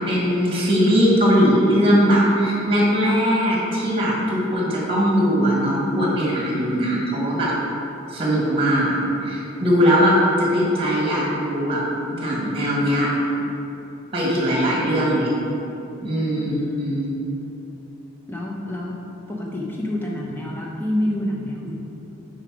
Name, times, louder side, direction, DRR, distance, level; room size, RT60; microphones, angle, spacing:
voice 1, 0.0-7.5 8.1-8.9 9.2-10.1 10.4-11.8 12.1-13.1 14.1-15.3 16.0-17.1, equal, 25° right, -4 dB, 1.4 m, -20 dB
voice 2, 16.5-17.0 18.3-19.0 19.3-21.8, left 1 dB, 10° left, -3 dB, 0.7 m, -28 dB
5.5 x 5.0 x 4.6 m, 2.9 s
head